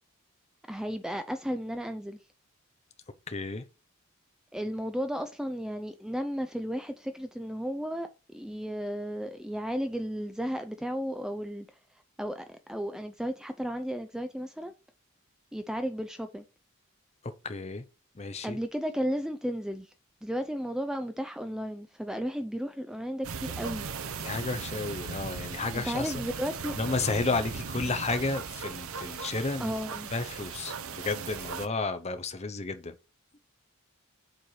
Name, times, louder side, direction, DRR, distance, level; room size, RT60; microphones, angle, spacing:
voice 1, 0.7-2.2 4.5-11.7 12.2-14.7 15.5-16.4 18.4-19.9 20.2-23.9 25.7-26.7 29.6-30.1, equal, 5° right, 0.5 m, -34 dB
voice 2, 3.3-3.6 17.4-17.8 18.2-18.6 24.2-26.2 26.8-29.7 30.1-33.0, left 3 dB, 30° left, 0.7 m, -32 dB
sound 1, 23.2-31.7, right 5 dB, 70° right, 0.7 m, -38 dB
7.7 x 4.5 x 4.8 m
head